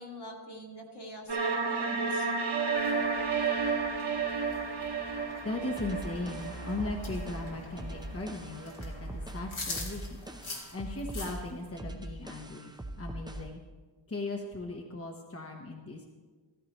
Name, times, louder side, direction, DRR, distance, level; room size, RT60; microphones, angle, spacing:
voice 1, 0.0-2.3, equal, 60° left, -1 dB, 2.0 m, -45 dB
sound 1, 1.3-8.2, right 5 dB, 60° right, 1.5 m, -32 dB
sound 2, 2.7-11.7, left 2 dB, 90° left, 2.6 m, -45 dB
voice 2, 5.2-10.2 10.7-13.6 14.1-16.0, left 2 dB, 30° left, 1 dB, 1.0 m, -38 dB
sound 3, 5.8-13.6, right 1 dB, 10° right, 0.6 m, -42 dB
14.5 x 14.0 x 3.0 m, 1.4 s
wide cardioid pair, 100°, 46 cm